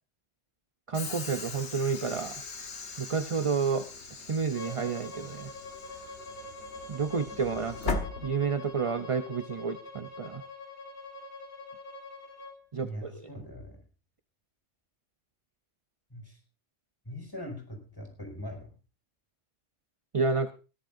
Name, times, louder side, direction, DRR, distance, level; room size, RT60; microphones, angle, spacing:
Train / Sliding door, 0.9-8.9, left 4 dB, 65° left, 1.7 m, -39 dB
voice 1, 0.9-2.4 3.0-5.5 6.9-10.4 12.7-13.3 20.1-20.5, right 5 dB, 35° right, 9 dB, 0.6 m, -30 dB
Bowed string instrument, 4.5-12.6, left 2 dB, 45° left, 5.7 m, -44 dB
voice 2, 12.8-13.8 16.1-16.4 17.0-18.7, equal, 20° left, 2 dB, 5.8 m, -41 dB
21.5 x 14.0 x 2.6 m, 0.33 s
omnidirectional pair, 1.3 m